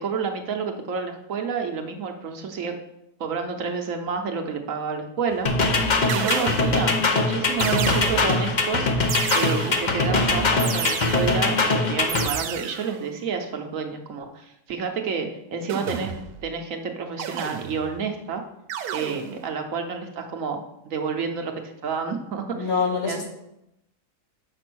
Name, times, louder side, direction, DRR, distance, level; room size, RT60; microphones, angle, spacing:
voice 1, 0.0-2.7 3.2-5.6 6.1-8.9 9.3-16.1 16.4-18.4 18.9-22.7 23.0-23.3, right 5 dB, 65° right, 4 dB, 1.1 m, -29 dB
sound 1, 5.3-5.6 6.1-6.9 7.6-8.5 9.1-10.0 10.6-11.5 12.1-13.0 15.7-16.4 17.2-18.0 18.7-19.5, right 9 dB, 90° right, 1.2 m, -32 dB
sound 2, 5.4-12.3, left 3 dB, 40° left, 0.7 m, -22 dB
voice 2, 22.5-23.3, left 5 dB, 65° left, 1 dB, 1.8 m, -25 dB
6.7 x 5.0 x 6.1 m, 0.84 s
omnidirectional pair, 1.6 m